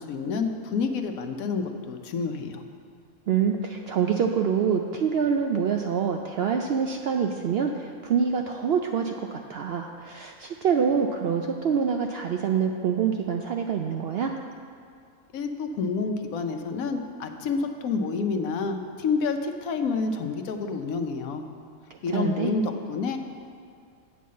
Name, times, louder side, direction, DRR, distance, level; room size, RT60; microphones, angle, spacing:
voice 1, 0.0-2.6 15.3-21.4 22.0-23.2, left 4 dB, 75° left, 6 dB, 1.1 m, -28 dB
voice 2, 3.3-14.3 22.1-22.5, right 6 dB, 70° right, 3 dB, 0.6 m, -26 dB
8.5 x 5.5 x 7.4 m, 2.3 s
omnidirectional pair, 1.5 m